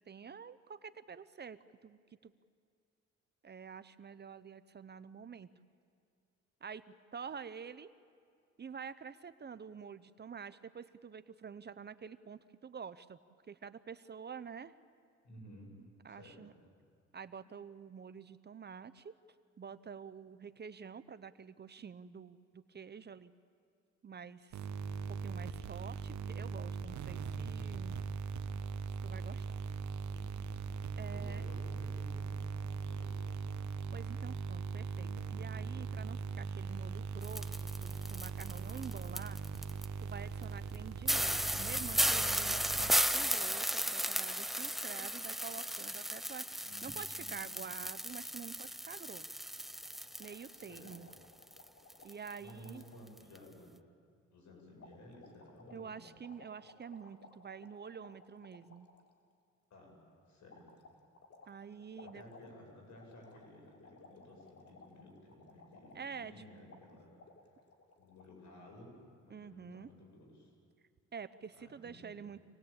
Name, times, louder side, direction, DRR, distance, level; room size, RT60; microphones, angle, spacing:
voice 1, 0.0-2.3 3.4-5.5 6.6-7.9 8.6-13.2 13.5-14.7 15.8-16.5 17.1-19.1 19.6-23.3 24.0-24.7 25.0-28.0 29.0-29.4 30.9-31.4 33.9-39.4 40.0-49.3 50.2-51.1 52.0-52.8 55.7-58.9 61.5-62.2 65.9-66.3 69.3-69.9 71.1-72.4, right 6 dB, 35° right, 13 dB, 0.8 m, -48 dB
voice 2, 15.2-15.8 16.1-16.6 31.1-33.4 46.6-47.6 50.5-51.0 52.4-53.7 54.3-56.0 59.7-60.0 60.3-60.7 62.0-67.2 68.0-69.0 69.2-70.5 71.5-72.2, left 1 dB, 70° left, 0 dB, 8.0 m, -55 dB
sound 1, 24.5-43.3, right 5 dB, 70° right, 1.3 m, -40 dB
sound 2, 37.2-39.9 40.4-40.5 40.7-40.8 41.1-51.2 51.4-52.4 52.7-52.8 53.2-53.4, equal, ahead, 0.6 m, -35 dB
sound 3, 49.5-53.1 54.8-59.1 60.5-66.4 66.7-66.9 67.2-68.2, left 4 dB, 50° left, 3.3 m, -59 dB
27.0 x 19.5 x 8.8 m, 2.3 s
cardioid pair, 90°, 30 cm